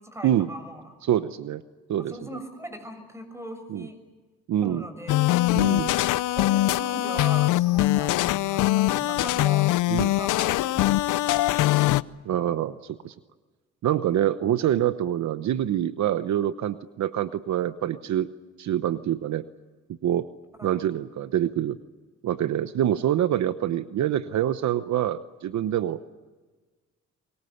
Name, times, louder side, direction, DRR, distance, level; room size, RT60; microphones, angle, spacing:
voice 1, 0.0-0.9 2.1-4.0 4.6-5.3 6.3-11.6 20.6-20.7, equal, 10° right, 8 dB, 6.6 m, -40 dB
voice 2, 1.0-1.6 1.9-2.1 3.7-3.9 4.5-4.8 5.5-5.9 9.9-10.1 12.2-13.1 13.8-18.3 18.6-19.4 20.0-20.3 20.6-21.8 22.2-26.0, right 11 dB, 70° right, 12 dB, 1.0 m, -25 dB
sound 1, 5.1-12.0, left 16 dB, 85° left, 0.7 m, -22 dB
24.5 x 22.0 x 8.0 m, 1.3 s
cardioid pair, 90°, 30 cm